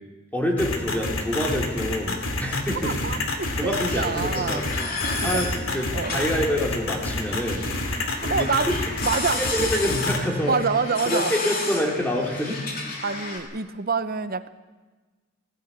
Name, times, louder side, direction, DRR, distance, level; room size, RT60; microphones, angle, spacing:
voice 1, 0.3-2.9 3.6-4.9 5.2-7.6 8.2-8.7 9.3-10.6 11.1-12.6, equal, 10° left, 0 dB, 3.4 m, -26 dB
sound 1, 0.6-10.2, left 2 dB, 80° left, 2.8 m, -28 dB
voice 2, 2.8-4.7 5.2-5.4 5.9-6.3 8.2-8.7 9.0-9.4 10.4-11.3 13.0-14.5, right 5 dB, 50° right, 12 dB, 0.9 m, -27 dB
sound 2, 3.4-13.4, left 3 dB, 45° left, 3.3 m, -32 dB
19.0 x 16.5 x 8.5 m, 1.3 s
head